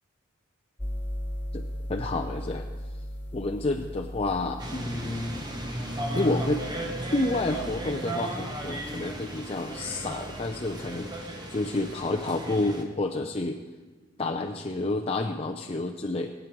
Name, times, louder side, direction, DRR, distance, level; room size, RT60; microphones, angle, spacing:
sound 1, 0.8-11.4, equal, 10° left, 1.1 m, -39 dB
voice 1, 1.9-2.7 3.3-5.3 6.1-6.7 7.1-13.6 14.2-16.3, left 2 dB, 30° left, 2 dB, 0.6 m, -29 dB
sound 2, 4.6-12.8, right 1 dB, 20° right, 1.3 m, -35 dB
20.0 x 9.1 x 4.7 m, 1.3 s
head